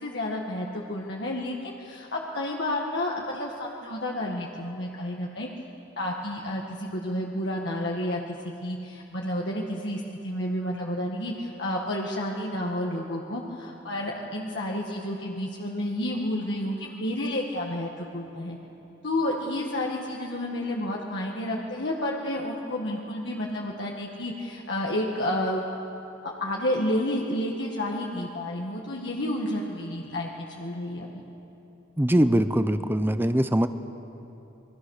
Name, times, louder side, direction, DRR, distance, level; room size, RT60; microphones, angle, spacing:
voice 1, 0.0-5.5 6.0-8.2 8.6-18.6 19.0-25.6 26.2-31.1, left 1 dB, 65° left, -2 dB, 1.9 m, -30 dB
voice 2, 32.0-33.7, right 1 dB, 10° right, 11 dB, 0.6 m, -22 dB
28.5 x 22.5 x 6.6 m, 3.0 s
head